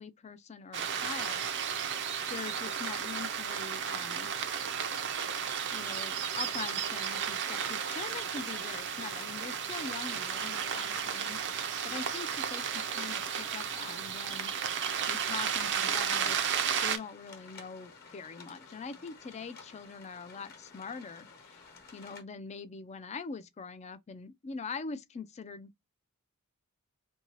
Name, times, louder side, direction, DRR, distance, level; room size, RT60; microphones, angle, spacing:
voice 1, 0.0-1.5 2.3-4.3 5.7-14.5 15.1-16.4 16.8-21.7 21.9-25.7, left 5 dB, 30° left, 0.4 m, -43 dB
sound 1, 0.7-17.0, right 7 dB, 55° right, 0.5 m, -33 dB
sound 2, 6.1-22.2, left 5 dB, 45° left, 1.0 m, -54 dB
2.7 x 2.7 x 2.9 m
head